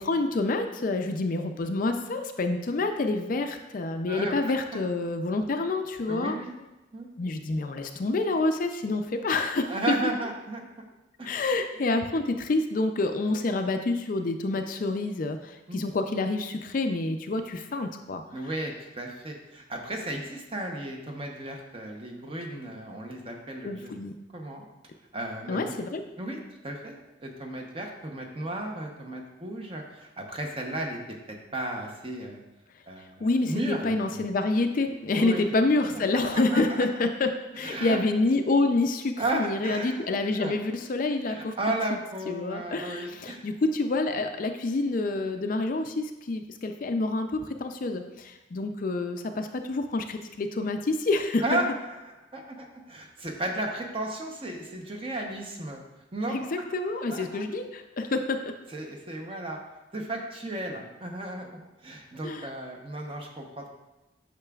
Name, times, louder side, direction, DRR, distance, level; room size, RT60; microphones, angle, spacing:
voice 1, 0.0-6.4 7.2-9.7 11.3-18.2 23.6-24.1 25.5-26.0 33.2-41.5 42.3-51.6 56.3-58.5 62.2-62.5, left 2 dB, 45° left, 6 dB, 0.4 m, -28 dB
voice 2, 4.1-4.4 4.7-4.8 6.1-6.5 6.9-7.1 9.7-10.6 11.2-11.4 15.7-15.8 18.3-23.9 24.3-24.6 25.1-25.7 26.2-26.4 26.6-31.0 31.3-32.4 32.9-34.2 35.1-35.4 36.1-36.9 37.5-38.0 39.2-40.0 40.4-40.6 41.3-43.5 51.4-51.7 52.0-55.8 56.1-56.7 57.1-57.4 58.7-59.6 59.9-63.7, right 1 dB, 30° right, 1 dB, 0.8 m, -34 dB
8.7 x 5.8 x 2.3 m, 1.0 s
head